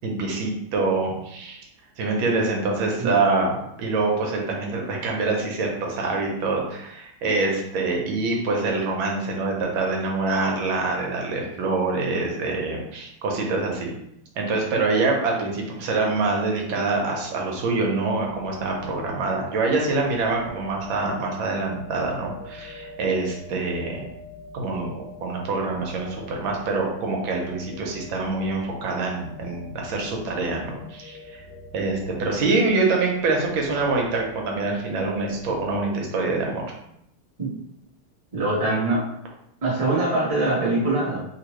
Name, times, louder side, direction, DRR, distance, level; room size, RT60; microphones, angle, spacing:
voice 1, 0.0-1.6 2.0-13.9 14.4-24.0 24.5-31.4 31.7-36.6, right 3 dB, 75° right, 0 dB, 1.4 m, -25 dB
sound 1, 18.2-35.8, left 2 dB, 90° left, 1.5 m, -44 dB
voice 2, 38.3-39.1 39.6-41.2, right 2 dB, 45° right, -6 dB, 0.4 m, -23 dB
3.3 x 2.9 x 3.0 m, 0.78 s
omnidirectional pair, 2.3 m